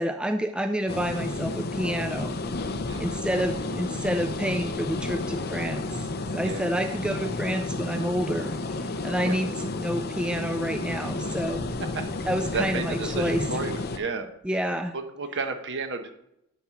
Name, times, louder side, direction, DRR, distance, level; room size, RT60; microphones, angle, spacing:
voice 1, 0.0-2.4 3.0-6.1 6.3-11.6 12.3-13.4 14.4-14.9, equal, 5° right, 7 dB, 0.3 m, -29 dB
sound 1, 0.9-14.0, left 2 dB, 45° left, 0.7 m, -31 dB
voice 2, 6.4-6.7 9.2-9.4 11.9-12.1 12.5-14.3 14.9-16.1, right 4 dB, 55° right, 6 dB, 1.2 m, -32 dB
12.5 x 4.3 x 5.9 m, 0.81 s
head